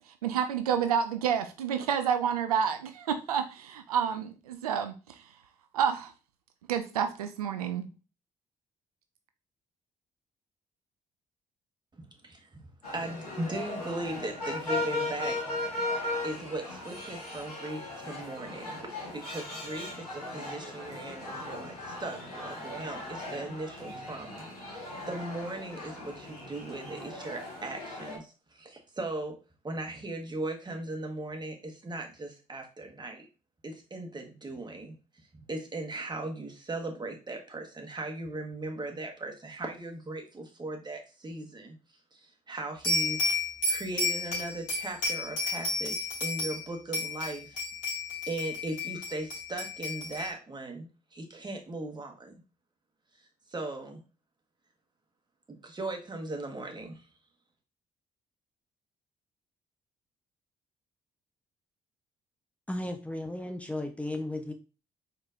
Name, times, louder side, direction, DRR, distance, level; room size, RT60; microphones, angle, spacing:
voice 1, 0.2-5.2 5.7-6.1 6.7-7.9, right 8 dB, 80° right, 8 dB, 0.4 m, -29 dB
sound 1, 12.8-28.2, left 2 dB, 85° left, 1.1 m, -37 dB
voice 2, 12.9-15.4 16.2-18.8 19.1-29.4 29.6-33.3 33.6-35.0 35.5-41.8 42.1-43.2 43.7-47.6 47.9-48.0 48.3-52.3 53.5-54.0 55.5-57.0, right 2 dB, 25° right, 3 dB, 1.4 m, -38 dB
sound 2, 42.8-46.6 46.9-50.3, left 2 dB, 45° left, 2.7 m, -32 dB
voice 3, 62.7-64.5, left 1 dB, 5° left, 5 dB, 0.7 m, -35 dB
4.4 x 4.3 x 2.5 m, 0.32 s
figure-of-eight pair, 45°, 19 cm